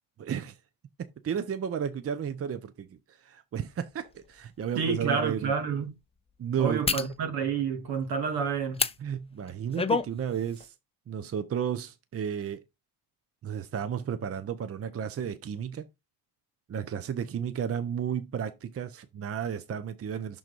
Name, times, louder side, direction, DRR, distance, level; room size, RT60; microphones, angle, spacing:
voice 1, 0.2-0.6 1.0-5.5 6.4-6.9 9.0-10.7 11.1-12.6 13.4-15.9 16.7-20.4, right 8 dB, 35° right, 0.7 m, -33 dB
sound 1, 4.0-4.1 4.7-4.9 6.8-7.1 8.7-9.0 9.5-10.1 10.5-10.7, left 4 dB, 15° left, 0.5 m, -27 dB
voice 2, 4.8-6.0 6.6-8.8, right 6 dB, 75° right, 2.1 m, -29 dB
6.3 x 3.6 x 5.2 m
cardioid pair, 100°, 38 cm